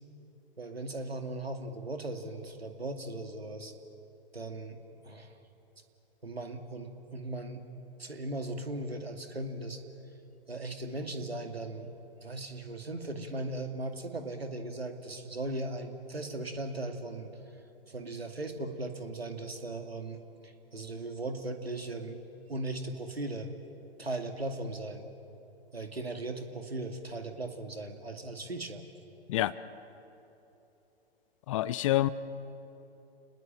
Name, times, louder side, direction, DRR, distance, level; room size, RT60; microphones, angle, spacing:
voice 1, 0.6-3.7 4.3-4.8 5.0-5.3 6.2-7.6 8.0-9.8 10.5-11.9 12.2-17.3 17.9-22.2 22.5-23.5 24.0-25.0 25.7-28.8, right 2 dB, 80° right, 6 dB, 2.5 m, -38 dB
voice 2, 31.5-32.1, left 15 dB, 35° left, 18 dB, 0.6 m, -27 dB
29.5 x 20.5 x 8.9 m, 3.0 s
figure-of-eight pair, 115°, 30 cm